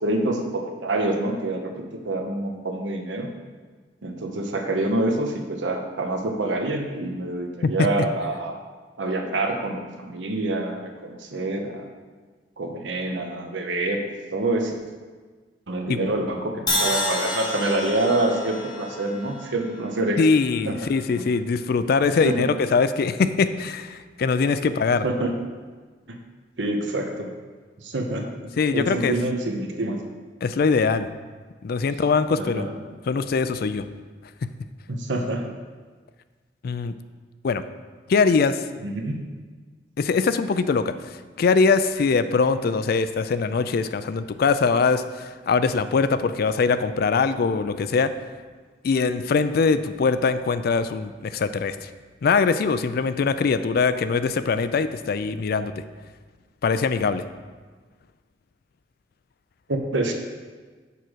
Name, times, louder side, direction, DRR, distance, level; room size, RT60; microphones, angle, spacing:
voice 1, 0.0-3.3 4.0-8.5 9.0-11.9 12.6-14.0 14.3-14.7 15.7-20.2 20.7-20.9 21.2-21.3 22.2-22.4 25.0-25.3 26.1-26.2 26.6-27.3 27.8-28.3 28.7-30.0 32.4-32.7 34.9-35.5 38.8-39.3 59.7-60.1, right 2 dB, 90° right, 3 dB, 0.9 m, -26 dB
Crash cymbal, 16.7-20.7, left 1 dB, 25° left, 1.7 m, -29 dB
voice 2, 20.2-25.0 28.6-29.2 30.4-31.1 31.6-32.6 33.1-33.9 34.4-34.5 36.6-36.9 37.4-37.6 38.1-38.6 40.0-40.9 41.4-48.1 48.8-51.9 52.2-55.7 56.6-57.2, left 4 dB, 55° left, 12 dB, 0.4 m, -22 dB
6.8 x 5.0 x 6.2 m, 1.4 s
head